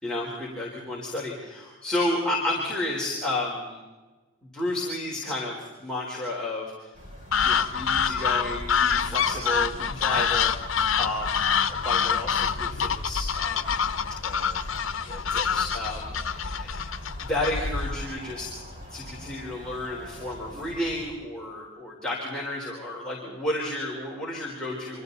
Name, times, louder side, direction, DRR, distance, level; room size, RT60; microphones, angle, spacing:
voice 1, 0.0-3.8 4.5-6.9 7.4-13.8 14.2-14.6 15.1-16.7 17.2-18.5 18.9-25.0, left 1 dB, 5° left, -5 dB, 4.1 m, -32 dB
sound 1, 6.9-21.1, left 1 dB, 40° right, 5.1 m, -42 dB
sound 2, 7.3-18.0, left 7 dB, 80° left, 0.9 m, -26 dB
28.5 x 25.0 x 4.1 m, 1.2 s
head